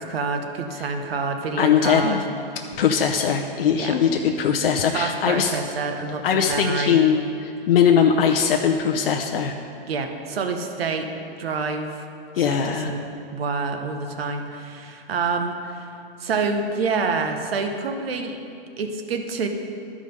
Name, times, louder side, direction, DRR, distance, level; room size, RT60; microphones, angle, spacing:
voice 1, 0.0-2.2 3.8-3.9 4.9-6.9 9.9-11.1 11.4-12.0 12.4-13.0 13.3-15.9 16.2-18.4 18.8-19.5, right 4 dB, 80° right, 5 dB, 1.1 m, -27 dB
voice 2, 1.6-2.2 2.7-5.6 6.2-9.6 12.3-12.9, left 7 dB, 70° left, 2 dB, 0.7 m, -20 dB
12.0 x 5.0 x 5.3 m, 2.6 s
hypercardioid pair, 155°, 29 cm